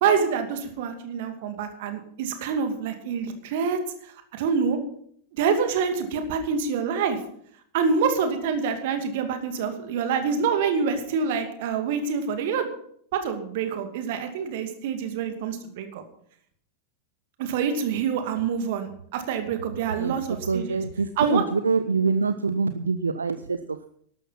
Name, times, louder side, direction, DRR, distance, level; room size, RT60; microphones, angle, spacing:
voice 1, 0.0-4.8 5.4-7.2 7.7-12.7 13.1-16.0 17.4-20.8 21.2-21.4, right 6 dB, 50° right, 7 dB, 2.5 m, -26 dB
voice 2, 20.4-23.9, right 4 dB, 75° right, 11 dB, 0.6 m, -25 dB
12.5 x 12.0 x 5.8 m, 0.63 s
figure-of-eight pair, 90°, 0 cm